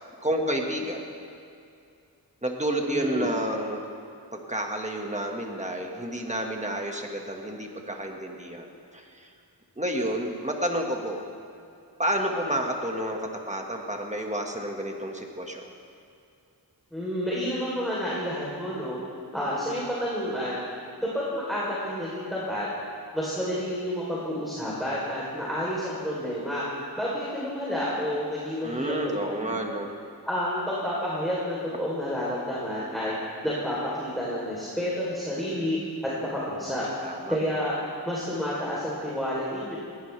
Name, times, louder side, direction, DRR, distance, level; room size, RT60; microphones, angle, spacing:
voice 1, 0.2-1.0 2.4-3.8 4.3-8.7 8.9-9.3 9.8-11.2 12.0-15.7 28.6-29.9 37.0-37.4, right 1 dB, 15° right, 1 dB, 1.8 m, -30 dB
voice 2, 2.8-3.3 16.9-19.0 19.3-20.6 21.1-22.7 23.1-26.7 27.0-28.9 29.4-29.6 30.2-33.1 33.4-35.8 36.2-36.8 37.3-37.7 38.0-39.8, equal, ahead, -8 dB, 3.9 m, -30 dB
20.0 x 17.0 x 3.5 m, 2.5 s
wide cardioid pair, 50°, 39 cm